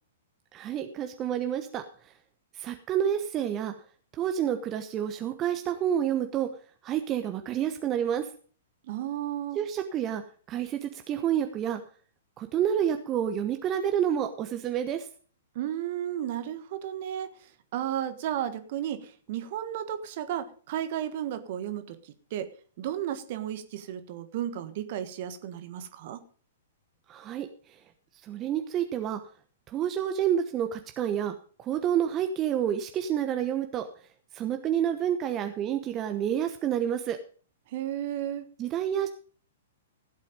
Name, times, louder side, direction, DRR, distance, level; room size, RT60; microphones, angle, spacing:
voice 1, 0.5-2.1 2.5-3.7 4.1-6.5 6.8-8.3 9.5-10.2 10.5-11.8 12.4-15.1 27.1-27.5 28.2-29.2 29.7-33.8 34.3-37.2 38.6-39.1, right 9 dB, 25° right, 7 dB, 1.1 m, -29 dB
voice 2, 8.9-9.6 15.5-17.3 17.7-22.5 22.8-26.2 37.7-38.5, right 11 dB, 45° right, 11 dB, 1.5 m, -33 dB
15.5 x 8.3 x 5.2 m, 0.42 s
figure-of-eight pair, 110°, 0 cm